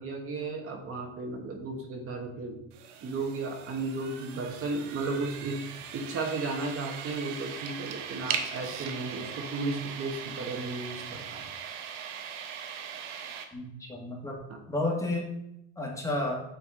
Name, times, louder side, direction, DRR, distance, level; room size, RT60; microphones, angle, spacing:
voice 1, 0.0-2.6 3.0-11.0 11.3-11.4, right 3 dB, 40° right, 2 dB, 1.1 m, -34 dB
sound 1, 2.7-13.5, right 8 dB, 85° right, 0.8 m, -39 dB
voice 2, 13.5-14.4 14.7-15.3 15.8-16.3, left 2 dB, 10° left, -2 dB, 1.7 m, -31 dB
8.7 x 2.9 x 3.7 m, 0.83 s
supercardioid pair, 105°, 36 cm